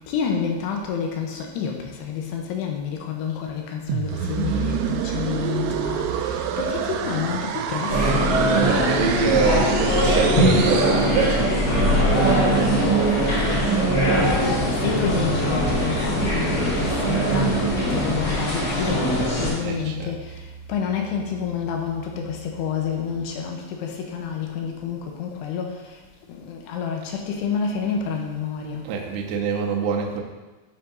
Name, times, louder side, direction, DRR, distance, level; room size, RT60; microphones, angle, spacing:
voice 1, 0.0-8.4 14.2-17.6 17.9-26.0 26.3-28.9, left 7 dB, 85° left, 2 dB, 2.9 m, -29 dB
sound 1, 3.9-11.8, right 8 dB, 90° right, 2.7 m, -28 dB
sound 2, 7.9-19.5, right 1 dB, 40° left, 1.2 m, -21 dB
voice 2, 8.5-13.7 19.6-20.2 28.8-30.2, right 6 dB, 75° right, 0 dB, 2.3 m, -26 dB
Piano, 15.6-23.3, right 6 dB, 70° left, 0.9 m, -40 dB
12.5 x 5.8 x 2.7 m, 1.2 s
omnidirectional pair, 4.8 m